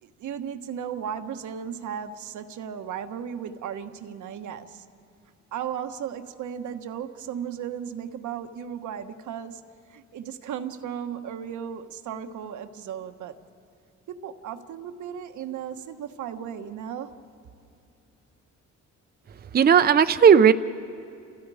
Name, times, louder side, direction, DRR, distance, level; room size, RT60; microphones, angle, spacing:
voice 1, 0.0-4.8 5.5-9.6 9.9-13.4 14.1-17.2, right 8 dB, 75° right, 7 dB, 1.3 m, -35 dB
voice 2, 19.5-20.5, right 7 dB, 30° right, 11 dB, 0.6 m, -15 dB
29.5 x 28.5 x 4.9 m, 2.6 s
cardioid pair, 90°, 30 cm